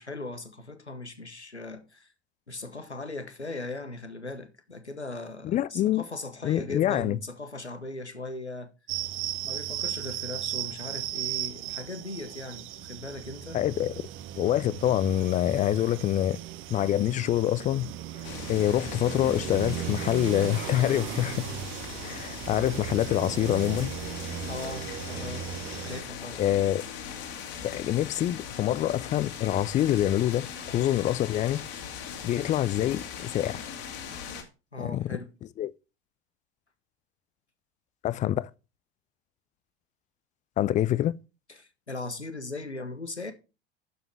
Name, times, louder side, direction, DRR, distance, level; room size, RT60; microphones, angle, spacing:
voice 1, 0.0-2.1 2.5-8.7 9.4-13.6 24.4-25.5 25.8-26.4 34.7-35.3 41.5-43.3, left 2 dB, 90° left, 1.1 m, -39 dB
voice 2, 5.4-6.0 6.4-7.2 13.5-14.0 14.3-16.4 16.7-17.9 18.2-21.5 22.0-23.9 26.4-26.8 27.6-31.6 32.2-33.6 34.8-35.1 35.6-35.7 38.0-38.5 40.6-41.1, left 12 dB, 25° left, 0.4 m, -26 dB
sound 1, 8.9-26.0, right 13 dB, 40° right, 0.8 m, -36 dB
sound 2, 18.2-34.4, left 7 dB, 55° left, 2.6 m, -40 dB
11.0 x 7.2 x 3.2 m
figure-of-eight pair, 75°, 33 cm